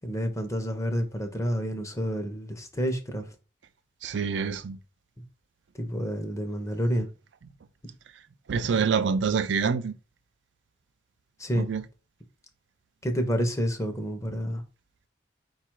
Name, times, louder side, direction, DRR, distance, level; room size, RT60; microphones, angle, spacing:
voice 1, 0.0-3.3 5.7-7.1 11.4-11.7 13.0-14.6, equal, 15° left, 0.6 m, -29 dB
voice 2, 4.0-4.8 8.5-9.9 11.5-11.8, right 5 dB, 75° right, 0.4 m, -26 dB
4.8 x 2.3 x 4.5 m
head